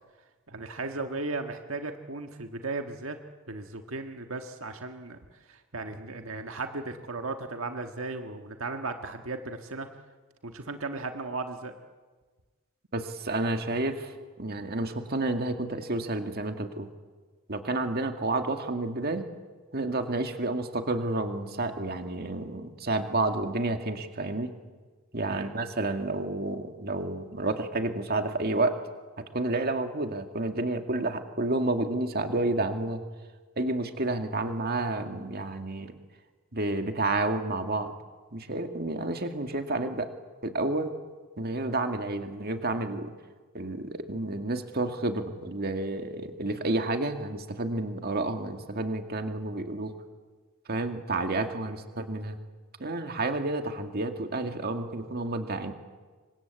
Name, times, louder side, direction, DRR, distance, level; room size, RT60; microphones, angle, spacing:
voice 1, 0.5-3.2 3.5-5.2 5.5-9.9 10.4-11.7 25.3-25.5, right 3 dB, 75° right, 5 dB, 1.6 m, -36 dB
voice 2, 12.9-14.1 14.4-16.9 17.5-19.3 19.7-24.5 25.1-28.8 29.3-33.0 33.6-35.9 36.5-37.9 38.3-40.1 40.4-40.9 41.4-43.1 43.5-49.9 50.7-52.4 52.8-55.7, right 2 dB, 50° right, 6 dB, 2.1 m, -30 dB
28.0 x 24.5 x 8.3 m, 1.4 s
head